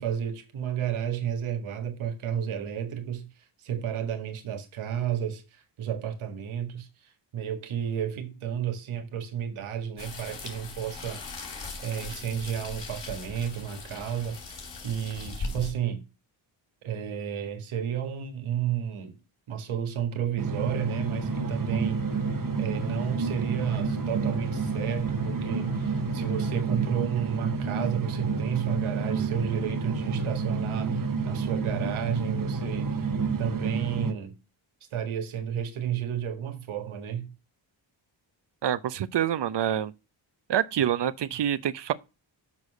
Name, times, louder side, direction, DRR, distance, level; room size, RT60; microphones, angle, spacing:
voice 1, 0.0-3.3 3.6-11.2 11.8-14.4 14.8-16.0 16.8-19.2 19.5-22.0 22.6-33.0 33.4-34.3 34.9-37.3, right 9 dB, 90° right, 1.7 m, -32 dB
sound 1, 10.0-15.7, left 3 dB, 60° left, 3.2 m, -39 dB
sound 2, 20.4-34.1, right 4 dB, 45° right, 1.2 m, -29 dB
sound 3, 21.0-26.6, left 4 dB, 90° left, 2.1 m, -43 dB
voice 2, 38.6-39.9 40.5-41.9, right 10 dB, 60° right, 0.8 m, -26 dB
6.9 x 4.8 x 6.5 m
cardioid pair, 65°, 48 cm